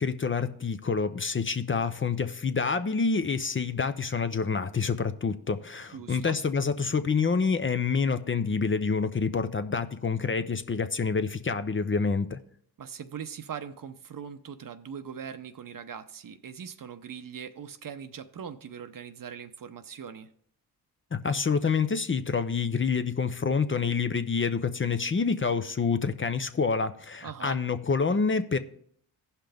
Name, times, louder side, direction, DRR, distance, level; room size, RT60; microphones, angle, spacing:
voice 1, 0.0-12.4 21.1-28.6, left 5 dB, 30° left, 0.6 m, -27 dB
voice 2, 5.9-6.4 12.8-20.3 27.2-27.6, right 7 dB, 50° right, 0.8 m, -41 dB
15.0 x 5.7 x 3.5 m
supercardioid pair, 55°, 43 cm